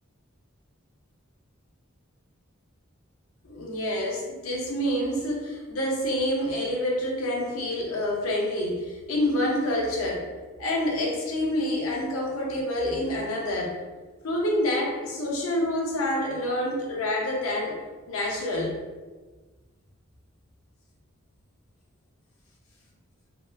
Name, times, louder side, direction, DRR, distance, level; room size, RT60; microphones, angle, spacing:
voice 1, 3.4-10.3 10.6-13.7 14.2-17.8 18.1-18.8, left 1 dB, 85° left, -1 dB, 0.6 m, -27 dB
2.7 x 2.2 x 2.4 m, 1.3 s
head